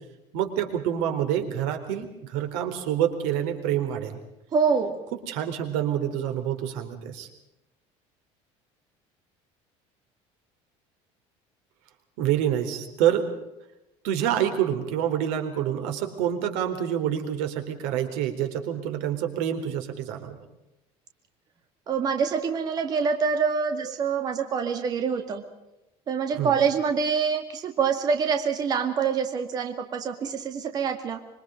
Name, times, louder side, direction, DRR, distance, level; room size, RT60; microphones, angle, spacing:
voice 1, 0.3-4.2 5.3-7.3 12.2-13.3 14.0-20.4 26.4-26.5, right 10 dB, 90° right, 7 dB, 4.1 m, -27 dB
voice 2, 4.5-5.0 21.9-25.4 26.1-31.2, right 6 dB, 30° right, 6 dB, 2.1 m, -25 dB
26.0 x 25.0 x 5.2 m, 0.91 s
cardioid pair, 170°, 13 cm